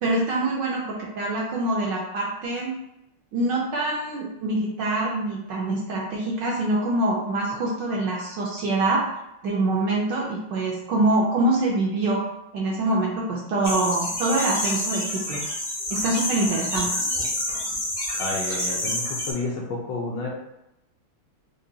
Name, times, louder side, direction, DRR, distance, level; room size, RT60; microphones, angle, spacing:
voice 1, 0.0-2.8 3.3-9.0 9.4-12.2 12.5-15.5 15.9-16.9, right 2 dB, 70° right, -3 dB, 1.1 m, -25 dB
sound 1, 13.6-19.3, left 1 dB, 50° left, 0.8 m, -28 dB
voice 2, 18.2-20.3, left 3 dB, 70° left, -3 dB, 1.1 m, -30 dB
4.9 x 2.2 x 2.7 m, 0.86 s
omnidirectional pair, 2.4 m